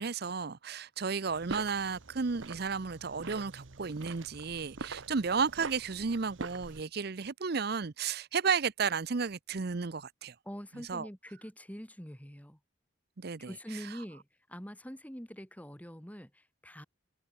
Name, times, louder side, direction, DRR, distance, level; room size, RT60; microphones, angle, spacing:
voice 1, 0.0-10.3 10.9-11.1 13.2-13.5, right 5 dB, 55° right, 0.7 m, -33 dB
sound 1, 1.3-6.8, right 3 dB, 75° right, 1.2 m, -44 dB
voice 2, 10.4-12.6 13.4-16.8, equal, 10° left, 7.2 m, -45 dB
head